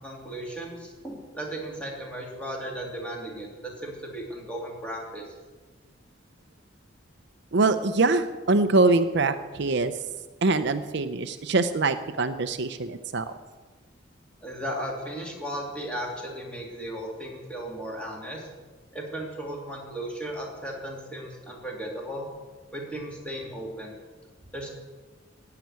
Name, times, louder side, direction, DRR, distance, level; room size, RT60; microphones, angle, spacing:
voice 1, 0.0-5.2 14.4-18.5 18.9-22.3 22.7-24.0 24.5-24.7, right 1 dB, 5° left, -2 dB, 2.9 m, -36 dB
voice 2, 7.5-9.9 10.4-13.3, right 3 dB, 65° right, 10 dB, 0.6 m, -23 dB
15.5 x 5.9 x 9.5 m, 1.3 s
head